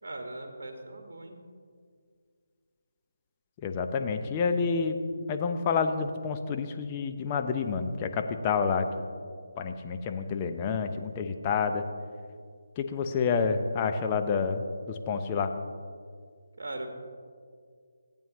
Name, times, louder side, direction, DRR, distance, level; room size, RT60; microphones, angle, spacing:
voice 1, 0.0-1.4 16.6-16.9, right 2 dB, 60° right, 4 dB, 1.5 m, -39 dB
voice 2, 3.6-5.0 5.3-8.9 9.6-11.8 12.8-15.5, left 5 dB, 25° left, 6 dB, 0.7 m, -29 dB
15.0 x 8.8 x 3.0 m, 2.1 s
figure-of-eight pair, 150°, 0 cm